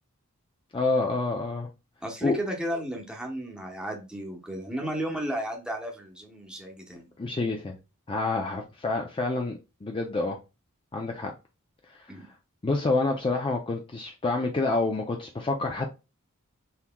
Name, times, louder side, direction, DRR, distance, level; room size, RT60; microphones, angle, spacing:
voice 1, 0.7-1.7 2.2-2.4 7.2-7.8 8.1-10.4 10.9-11.3 11.9-12.1 12.6-15.9, left 3 dB, 25° left, 0.4 m, -28 dB
voice 2, 2.0-7.1 12.1-12.2, equal, 5° right, 0.9 m, -34 dB
5.6 x 3.0 x 2.2 m
head